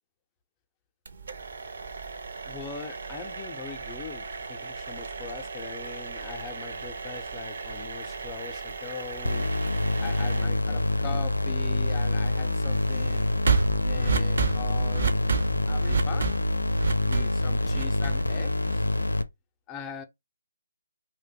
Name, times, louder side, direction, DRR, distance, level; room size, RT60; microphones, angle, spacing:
sound 1, 1.1-19.0, right 5 dB, 55° right, 0.6 m, -33 dB
voice 1, 2.4-9.5 10.0-13.2 13.8-15.1 15.7-16.4 17.0-18.9 19.7-20.0, left 6 dB, 15° left, 0.4 m, -41 dB
sound 2, 9.2-19.2, left 2 dB, 85° left, 0.4 m, -26 dB
2.5 x 2.1 x 3.9 m
figure-of-eight pair, 145°, 0 cm